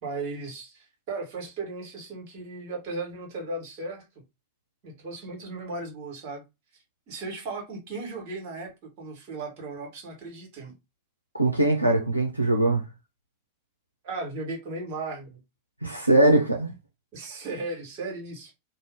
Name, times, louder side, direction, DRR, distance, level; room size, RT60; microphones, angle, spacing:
voice 1, 0.0-4.0 4.8-6.4 7.1-10.7 14.0-15.4 17.1-18.5, right 3 dB, 45° right, 1.3 m, -36 dB
voice 2, 11.3-12.9 15.8-16.7, right 2 dB, 90° right, 0.4 m, -21 dB
2.6 x 2.1 x 3.3 m
figure-of-eight pair, 90°, 0 cm